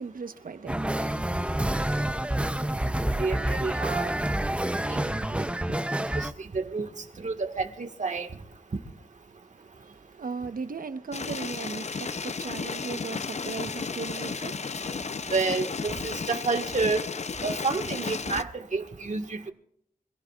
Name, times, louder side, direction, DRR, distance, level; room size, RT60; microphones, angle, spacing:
voice 1, 0.0-1.4 9.6-14.9, right 5 dB, 85° right, 1.1 m, -38 dB
sound 1, 0.7-6.3, right 1 dB, 10° right, 0.7 m, -28 dB
voice 2, 3.2-4.1 4.9-5.4 6.2-6.3 6.5-6.9 7.2-8.3 15.3-17.1 17.4-19.5, right 4 dB, 60° right, 1.7 m, -29 dB
sound 2, 11.1-18.4, left 5 dB, 50° left, 0.7 m, -33 dB
27.0 x 16.0 x 2.5 m
wide cardioid pair, 90°, 14 cm